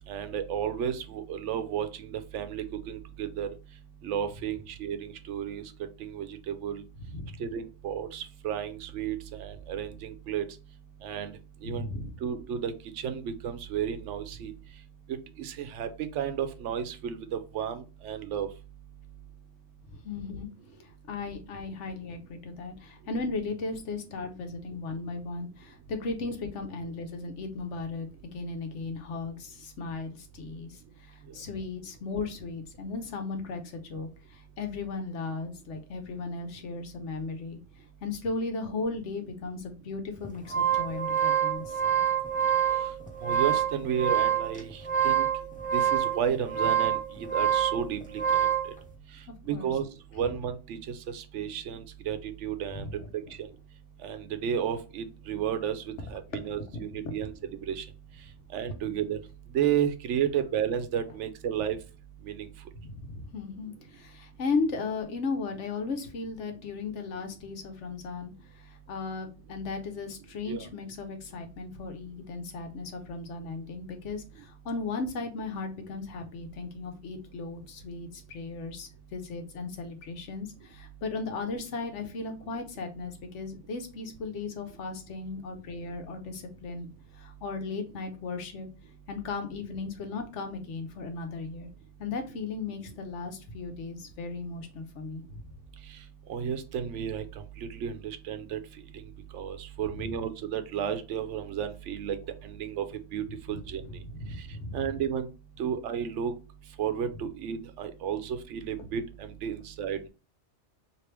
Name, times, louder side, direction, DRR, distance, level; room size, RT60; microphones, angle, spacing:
voice 1, 0.1-3.5 4.0-5.6 6.0-6.8 7.4-10.4 11.0-11.3 11.6-11.9 12.2-12.7 13.0-14.5 15.1-18.5 43.2-45.3 45.7-48.2 49.5-49.8 50.1-50.8 51.1-52.9 53.1-53.5 54.0-57.3 57.7-57.9 58.5-59.2 59.5-61.8 62.2-62.5 70.5-70.6 96.3-97.2 97.6-98.6 99.3-102.2 102.4-102.8 103.1-103.8 104.7-105.3 105.6-106.3 106.8-110.1, right 8 dB, 80° right, 9 dB, 0.9 m, -32 dB
voice 2, 7.0-7.4 11.6-12.1 19.9-20.5 20.8-37.6 38.0-41.8 49.5-49.7 52.7-53.1 62.8-88.7 89.1-91.7 92.0-95.4 100.0-100.1 103.5-104.9, left 3 dB, 80° left, 5 dB, 1.1 m, -36 dB
sound 1, 40.2-48.7, right 9 dB, 10° left, 0.4 m, -26 dB
3.2 x 2.9 x 3.0 m, 0.32 s
omnidirectional pair, 1.2 m